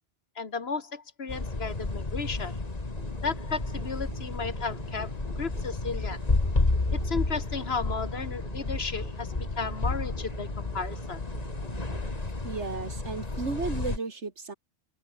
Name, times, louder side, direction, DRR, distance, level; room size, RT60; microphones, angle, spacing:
voice 1, 0.4-2.6 3.2-5.1 5.4-6.2 6.9-11.2, left 5 dB, 65° left, 1.9 m, -34 dB
sound 1, 1.3-14.0, left 2 dB, 35° left, 2.3 m, -31 dB
Musical instrument, 3.0-12.2, right 2 dB, 45° right, 3.6 m, -45 dB
voice 2, 12.4-14.5, right 4 dB, 80° right, 2.8 m, -34 dB
omnidirectional pair, 1.2 m